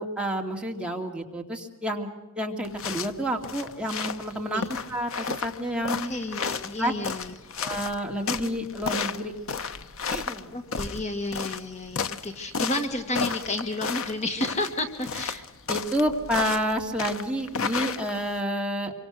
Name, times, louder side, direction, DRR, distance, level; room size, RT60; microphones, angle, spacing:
voice 1, 0.0-2.1 2.3-4.6 4.9-6.1 6.8-6.9 7.6-9.3 10.1-10.5 15.7-18.9, equal, 5° right, 1 dB, 2.3 m, -29 dB
sound 1, 2.6-18.4, left 5 dB, 65° left, 1.0 m, -33 dB
voice 2, 5.9-7.7 10.5-15.4, left 2 dB, 30° left, 6 dB, 1.6 m, -31 dB
26.5 x 24.5 x 6.4 m, 1.2 s
head